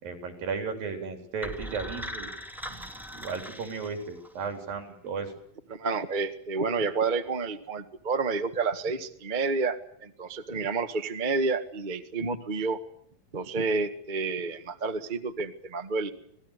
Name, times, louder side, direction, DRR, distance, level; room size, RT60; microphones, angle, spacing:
voice 1, 0.0-2.3 2.7-2.8 3.1-5.3, right 5 dB, 85° right, 6 dB, 5.8 m, -35 dB
sound 1, 1.4-4.4, equal, ahead, 1.6 m, -40 dB
voice 2, 5.7-12.8 13.3-16.1, right 4 dB, 25° right, 7 dB, 1.0 m, -29 dB
26.5 x 19.0 x 8.4 m, 0.64 s
omnidirectional pair, 4.0 m